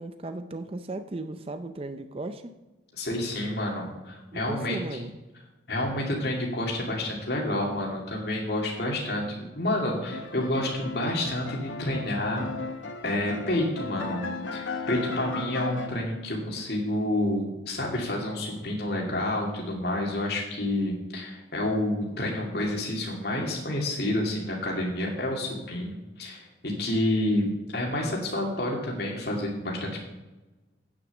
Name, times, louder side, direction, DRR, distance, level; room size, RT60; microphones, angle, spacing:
voice 1, 0.0-2.6 4.3-5.2, right 2 dB, 30° right, 9 dB, 0.5 m, -36 dB
voice 2, 3.0-4.8 5.7-12.4 13.0-14.2 14.5-30.0, left 1 dB, 55° left, -2 dB, 2.4 m, -29 dB
sound 1, 10.1-15.9, left 3 dB, 80° left, 1.0 m, -36 dB
9.3 x 6.6 x 7.1 m, 1.1 s
head